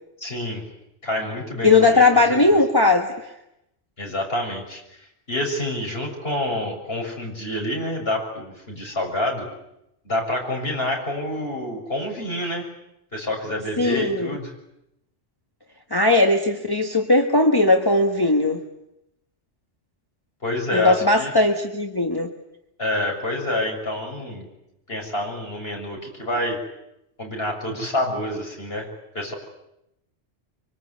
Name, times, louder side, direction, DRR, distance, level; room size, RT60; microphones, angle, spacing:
voice 1, 0.2-0.7 1.0-2.6 4.0-4.8 5.3-9.5 10.1-12.7 13.1-14.5 20.4-21.3 22.8-24.5 24.9-26.6 27.2-28.9 29.1-29.3, left 1 dB, 55° left, 1 dB, 7.1 m, -27 dB
voice 2, 1.6-3.1 13.8-14.4 15.9-18.6 20.7-22.3, left 2 dB, 20° left, 3 dB, 1.6 m, -18 dB
25.0 x 24.5 x 9.7 m, 0.84 s
omnidirectional pair, 1.2 m